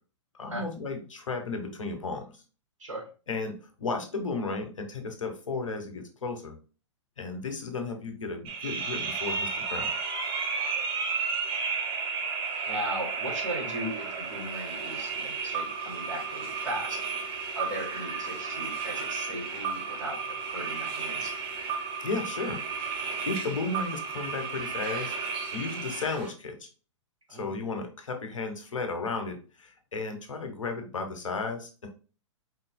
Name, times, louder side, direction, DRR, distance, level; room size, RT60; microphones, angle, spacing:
voice 1, 0.3-2.4 3.3-6.6 7.2-9.9 22.0-25.1 25.5-26.7 27.4-31.9, left 3 dB, 80° left, 5 dB, 1.3 m, -34 dB
sound 1, 8.4-26.3, right 5 dB, 30° right, 1.1 m, -33 dB
voice 2, 10.5-10.8 12.7-17.0 17.5-21.3 27.3-27.5, right 1 dB, 85° right, 0 dB, 2.1 m, -37 dB
4.7 x 4.1 x 2.3 m, 0.35 s
hypercardioid pair, 115°, 16 cm